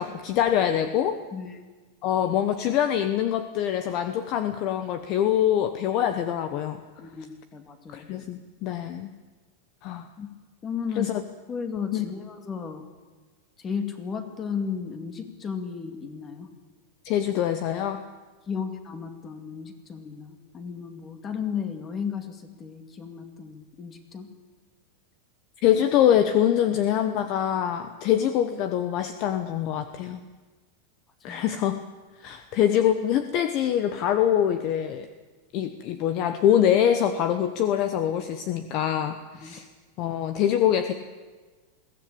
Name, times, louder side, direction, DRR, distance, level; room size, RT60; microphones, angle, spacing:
voice 1, 0.0-1.2 2.0-6.8 7.9-9.1 9.8-10.1 10.9-11.2 11.9-12.1 17.0-18.0 25.6-30.2 31.2-31.8 32.2-35.1 35.5-39.6 40.0-40.9, left 10 dB, 40° left, 10 dB, 1.1 m, -24 dB
voice 2, 7.0-8.1 10.2-10.3 10.6-11.2 11.5-12.8 13.6-16.5 18.5-24.3 31.2-31.5 39.4-39.5, left 6 dB, 20° left, 7 dB, 2.3 m, -34 dB
22.0 x 16.5 x 8.7 m, 1.3 s
supercardioid pair, 160°, 0 cm